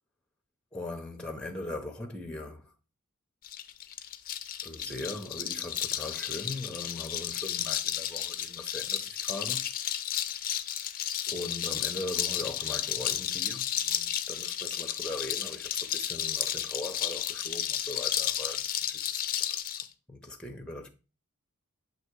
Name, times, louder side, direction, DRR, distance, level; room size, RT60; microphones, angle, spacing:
voice 1, 0.7-2.7 4.6-9.6 11.3-19.8 20.1-20.9, left 2 dB, 5° left, 0.7 m, -40 dB
sound 1, 3.4-19.9, left 11 dB, 40° left, 0.4 m, -33 dB
7.1 x 2.9 x 4.6 m
head